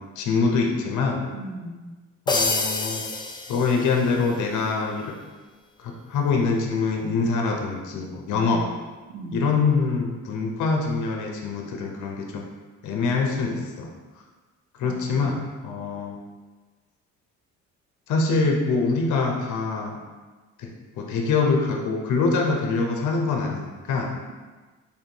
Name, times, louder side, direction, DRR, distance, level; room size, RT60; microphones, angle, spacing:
voice 1, 0.0-1.2 2.3-3.0 3.5-5.2 5.8-8.6 9.3-12.4 12.8-13.9 14.8-16.2 18.1-20.0 20.6-20.7 21.0-24.1, left 4 dB, 60° left, 1 dB, 0.7 m, -24 dB
voice 2, 1.3-1.9 8.3-8.7 9.1-9.6 14.8-15.3, right 1 dB, 70° right, -2 dB, 0.7 m, -37 dB
sound 1, 2.3-4.3, left 3 dB, 15° left, 0.3 m, -27 dB
3.6 x 2.7 x 2.8 m, 1.3 s
supercardioid pair, 60°, 33 cm